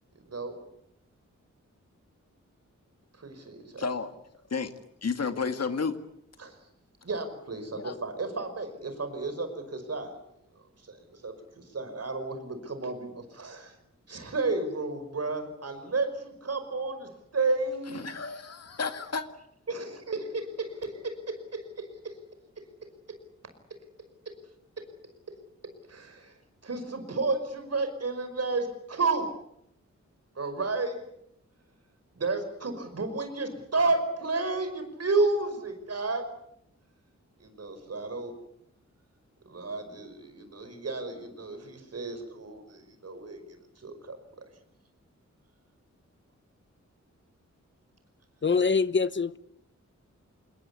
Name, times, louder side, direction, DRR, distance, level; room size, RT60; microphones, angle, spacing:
voice 1, 0.2-0.6 3.2-3.9 6.4-6.6 7.0-10.1 10.9-13.8 14.1-18.1 19.7-22.2 22.6-22.7 23.1-23.2 24.3-24.4 24.8-24.9 25.9-26.4 26.6-29.3 30.4-31.0 32.2-36.3 37.4-38.3 39.5-44.5, right 3 dB, 55° right, 5.5 m, -32 dB
voice 2, 3.8-4.1 4.5-4.7 5.0-6.0 7.7-7.9 17.9-19.3, left 5 dB, 60° left, 2.1 m, -31 dB
voice 3, 48.4-49.4, left 5 dB, 40° left, 0.9 m, -24 dB
27.5 x 21.0 x 8.4 m
wide cardioid pair, 120°, 29 cm